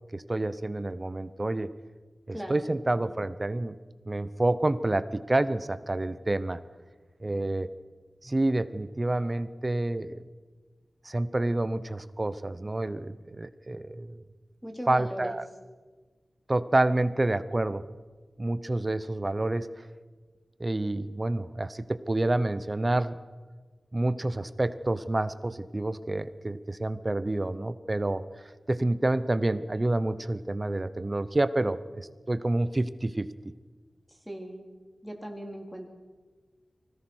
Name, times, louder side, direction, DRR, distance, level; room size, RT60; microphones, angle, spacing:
voice 1, 0.1-1.7 2.3-3.8 4.1-6.6 7.2-7.7 8.2-10.2 11.0-14.2 14.9-15.4 16.5-17.8 18.4-19.8 20.6-23.2 23.9-28.2 28.7-33.3, right 2 dB, 30° right, 13 dB, 0.9 m, -28 dB
voice 2, 2.3-2.7 14.6-15.4 34.1-34.7 35.0-35.9, equal, ahead, 1 dB, 3.5 m, -38 dB
24.5 x 17.0 x 6.3 m, 1.4 s
wide cardioid pair, 95°, 0 cm